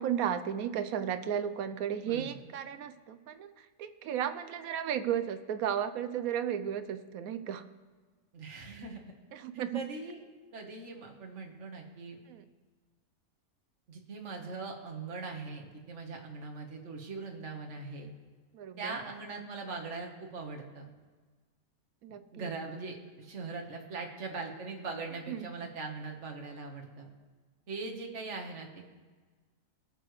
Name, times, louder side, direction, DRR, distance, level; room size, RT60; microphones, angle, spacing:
voice 1, 0.0-7.7 9.3-9.9 12.3-12.4 18.5-18.9 22.0-22.5 25.3-25.5, right 9 dB, 75° right, 11 dB, 1.0 m, -34 dB
voice 2, 2.0-2.4 8.3-9.0 9.7-10.2 10.5-12.2 13.9-18.1 18.8-20.9 22.3-27.1 27.7-28.9, right 4 dB, 55° right, 1 dB, 1.6 m, -41 dB
19.5 x 6.8 x 3.2 m, 1.4 s
omnidirectional pair, 1.6 m